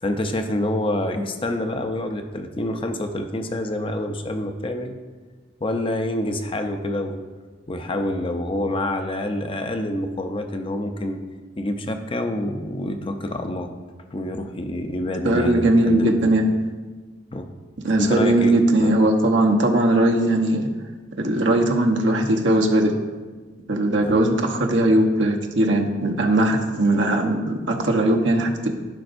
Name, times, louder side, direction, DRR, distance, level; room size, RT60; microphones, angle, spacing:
voice 1, 0.0-5.0 5.6-7.2 7.7-11.2 11.6-13.7 14.1-16.4 17.3-17.5 18.0-18.9 24.0-24.1, left 1 dB, 30° left, 6 dB, 0.6 m, -27 dB
voice 2, 15.2-16.5 17.8-20.7 21.2-22.9 23.7-28.7, right 1 dB, 90° right, 2 dB, 1.0 m, -19 dB
15.0 x 5.1 x 2.6 m, 1.3 s
head